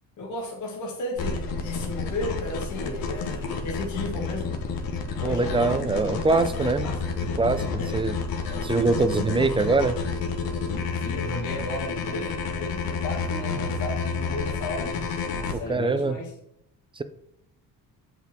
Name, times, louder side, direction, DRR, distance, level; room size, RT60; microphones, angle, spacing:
voice 1, 0.2-4.7 5.2-5.5 6.3-6.5 6.8-7.0 7.7-8.0 10.9-15.1 15.3-16.3, left 2 dB, 55° left, -1 dB, 1.8 m, -34 dB
sound 1, 1.2-15.5, left 4 dB, 80° left, 1.5 m, -30 dB
voice 2, 5.2-6.9 7.4-7.6 7.9-8.2 8.6-10.0 15.7-16.2 17.0-17.1, right 3 dB, 15° right, 11 dB, 0.5 m, -23 dB
7.8 x 5.9 x 4.3 m, 0.74 s
cardioid pair, 135°, 35 cm